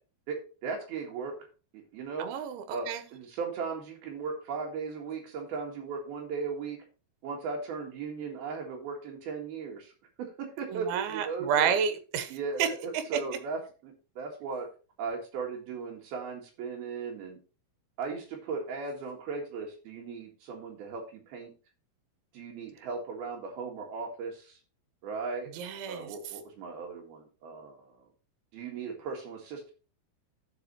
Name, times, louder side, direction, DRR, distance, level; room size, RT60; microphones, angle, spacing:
voice 1, 0.6-1.4 1.7-2.3 2.7-6.8 7.2-9.9 10.2-11.7 12.3-14.7 15.0-17.4 18.0-21.5 22.3-24.6 25.0-25.5 25.9-28.0 28.5-29.7, right 5 dB, 65° right, 1 dB, 3.4 m, -37 dB
voice 2, 2.2-3.0 10.7-12.3 12.6-12.7 12.9-13.2 25.5-26.2, right 8 dB, 85° right, 10 dB, 3.3 m, -30 dB
14.0 x 5.2 x 3.1 m, 0.35 s
omnidirectional pair, 5.2 m